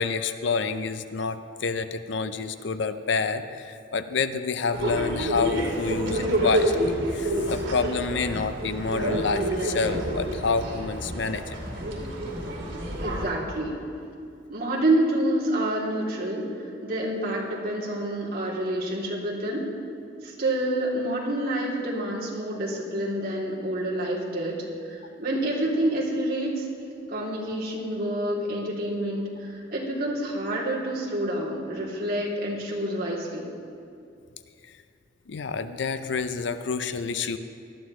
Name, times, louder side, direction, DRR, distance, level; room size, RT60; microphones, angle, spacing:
voice 1, 0.0-11.4 35.3-37.4, left 4 dB, 65° left, 11 dB, 0.5 m, -28 dB
sound 1, 4.7-13.3, right 1 dB, 75° right, 2.7 m, -28 dB
voice 2, 13.0-13.8 14.5-16.5 16.8-19.6 20.2-24.6 24.9-26.7 27.1-33.4, right 1 dB, 50° right, -5 dB, 3.0 m, -28 dB
18.5 x 13.0 x 3.2 m, 2.4 s
head